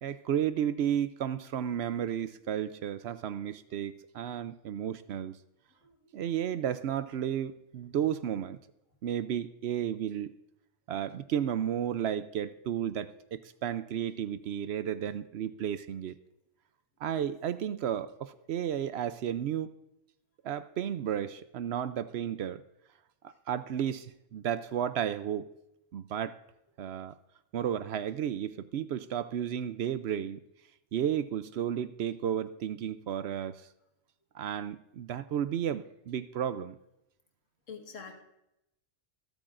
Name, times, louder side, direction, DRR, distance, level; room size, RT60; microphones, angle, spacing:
voice 1, 0.0-5.4 6.1-8.6 9.0-10.3 10.9-16.1 17.0-19.7 20.4-22.6 23.2-25.5 25.9-26.4 26.8-27.1 27.5-30.4 30.9-33.7 34.3-36.8, right 9 dB, 65° right, 13 dB, 0.7 m, -33 dB
voice 2, 5.8-6.2 37.7-38.2, left 5 dB, 70° left, 3 dB, 1.9 m, -46 dB
25.5 x 8.7 x 2.5 m, 0.85 s
omnidirectional pair, 1.3 m